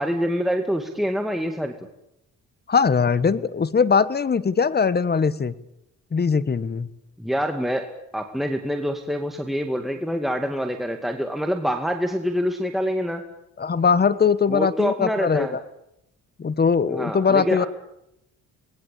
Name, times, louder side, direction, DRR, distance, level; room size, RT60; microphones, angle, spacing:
voice 1, 0.0-1.7 7.2-13.2 14.5-15.6 16.9-17.7, equal, ahead, 4 dB, 2.3 m, -26 dB
voice 2, 2.7-5.5 6.1-6.9 13.6-15.6 16.4-17.7, left 5 dB, 35° left, 16 dB, 1.4 m, -21 dB
26.0 x 20.5 x 8.6 m, 0.83 s
cardioid pair, 90°, 30 cm